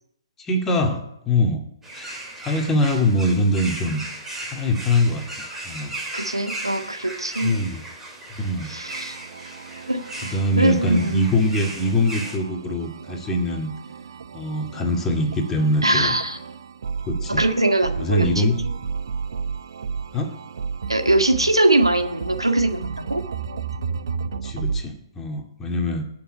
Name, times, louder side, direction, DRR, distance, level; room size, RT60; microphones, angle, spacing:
voice 1, 0.4-1.6 1.9-4.0 4.4-5.9 7.4-7.8 8.4-8.7 10.2-13.7 14.3-16.1 17.1-17.4 18.0-18.6 20.1-20.3 24.4-26.0, left 1 dB, 15° left, 2 dB, 2.2 m, -23 dB
sound 1, 1.8-12.4, right 2 dB, 10° right, 3.7 m, -36 dB
voice 2, 6.1-7.6 8.7-9.2 9.9-11.2 15.8-16.4 17.3-18.5 20.9-23.2, right 2 dB, 90° right, 5 dB, 2.0 m, -22 dB
sound 2, 8.8-24.8, right 5 dB, 60° right, 1.1 m, -33 dB
19.5 x 6.8 x 9.1 m, 0.79 s
figure-of-eight pair, 130°, 3 cm